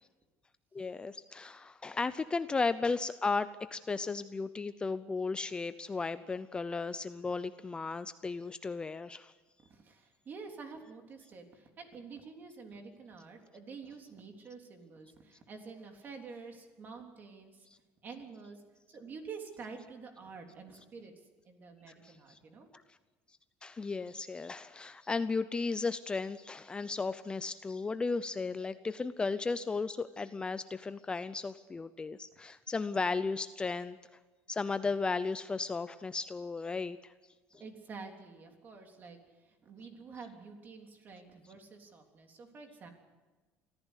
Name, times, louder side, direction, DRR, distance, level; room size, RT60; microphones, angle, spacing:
voice 1, 0.7-9.3 22.0-22.1 23.6-34.0 34.5-37.1, left 4 dB, 15° left, 13 dB, 0.6 m, -35 dB
voice 2, 9.7-17.7 18.0-21.1 21.5-22.7 37.5-42.9, right 5 dB, 35° right, 4 dB, 3.5 m, -48 dB
24.0 x 15.0 x 8.3 m, 1.3 s
cardioid pair, 130°, 6 cm